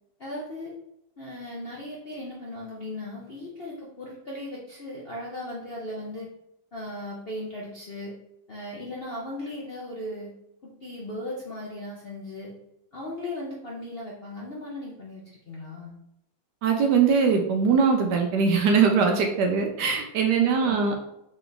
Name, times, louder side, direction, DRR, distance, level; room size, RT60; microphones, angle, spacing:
voice 1, 0.2-0.8 1.2-6.3 6.7-8.1 8.5-10.3 10.8-12.5 12.9-16.0 20.4-20.9, left 1 dB, 60° left, -4 dB, 0.6 m, -37 dB
voice 2, 16.6-21.1, right 5 dB, 70° right, 3 dB, 1.1 m, -22 dB
3.8 x 3.3 x 3.9 m, 0.81 s
omnidirectional pair, 2.1 m